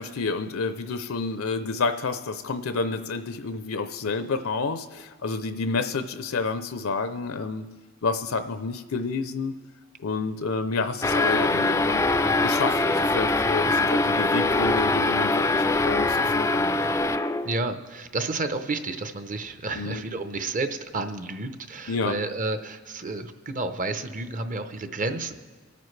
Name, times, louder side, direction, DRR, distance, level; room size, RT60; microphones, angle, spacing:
voice 1, 0.0-7.7 8.0-9.6 10.0-12.1 12.4-16.8 19.7-20.0 21.9-22.2, left 4 dB, 80° left, 10 dB, 0.5 m, -29 dB
sound 1, 11.0-17.6, left 2 dB, 15° left, 0.3 m, -23 dB
voice 2, 17.4-25.4, right 3 dB, 40° right, 9 dB, 0.7 m, -31 dB
25.5 x 9.3 x 3.2 m, 1.3 s
head